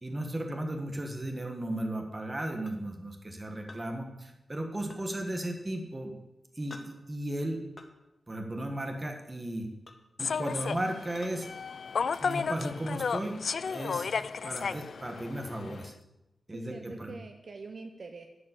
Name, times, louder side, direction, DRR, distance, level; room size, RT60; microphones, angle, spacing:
voice 1, 0.0-6.1 6.6-7.6 8.3-9.7 10.2-11.5 12.2-13.4 13.7-14.1 14.4-15.9 16.5-17.1, right 1 dB, 20° right, 3 dB, 1.5 m, -35 dB
sound 1, 2.7-2.8 3.7-3.9 4.9-5.0 6.7-6.9 7.8-7.9 8.8-9.0 9.9-10.0 11.1-11.4 12.2-12.4, left 2 dB, 35° left, 1.0 m, -49 dB
Human voice / Subway metro underground, 10.2-15.9, left 5 dB, 70° left, 0.3 m, -33 dB
voice 2, 16.5-18.3, right 4 dB, 55° right, 5 dB, 0.7 m, -44 dB
11.5 x 5.4 x 8.2 m, 0.96 s
wide cardioid pair, 145°, 0 cm